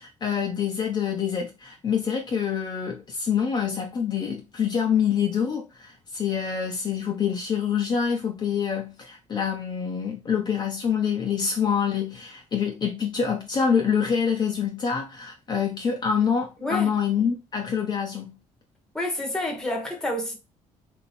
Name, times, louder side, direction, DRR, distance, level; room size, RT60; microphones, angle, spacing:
voice 1, 0.0-18.3, left 7 dB, 35° left, 0.7 m, -26 dB
voice 2, 16.6-16.9 18.9-20.4, left 1 dB, 5° left, 1.1 m, -29 dB
2.9 x 2.7 x 4.2 m
cardioid pair, 120°, 13 cm